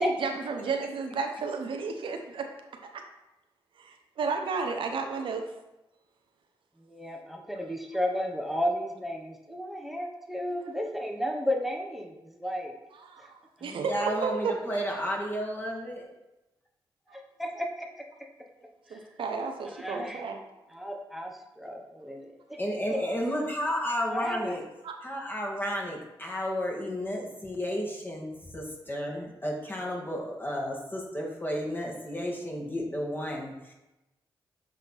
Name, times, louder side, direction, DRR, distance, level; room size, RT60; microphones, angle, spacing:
voice 1, 0.0-2.5 3.8-5.4 10.5-10.6 13.1-13.2 13.6-14.5 17.1-17.2 18.9-20.4 24.8-24.9, right 4 dB, 75° right, 4 dB, 0.7 m, -32 dB
voice 2, 6.8-12.8 13.2-13.3 17.1-18.3 18.9-19.2 19.6-20.3 20.7-22.6 22.9-23.0 24.1-24.6, equal, ahead, 2 dB, 1.1 m, -33 dB
voice 3, 13.6-16.1 22.6-24.7 25.0-33.7, equal, 25° left, -2 dB, 2.1 m, -32 dB
7.4 x 3.5 x 4.4 m, 0.98 s
supercardioid pair, 50°, 9 cm